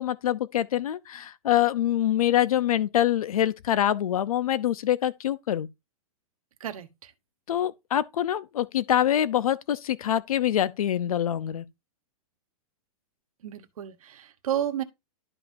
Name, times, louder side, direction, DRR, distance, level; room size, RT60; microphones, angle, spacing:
voice 1, 0.0-5.7 7.5-11.7, left 11 dB, 75° left, 0.8 m, -25 dB
voice 2, 6.6-7.1 13.4-14.8, right 10 dB, 75° right, 1.3 m, -32 dB
12.0 x 5.5 x 2.7 m
supercardioid pair, 175°, 18 cm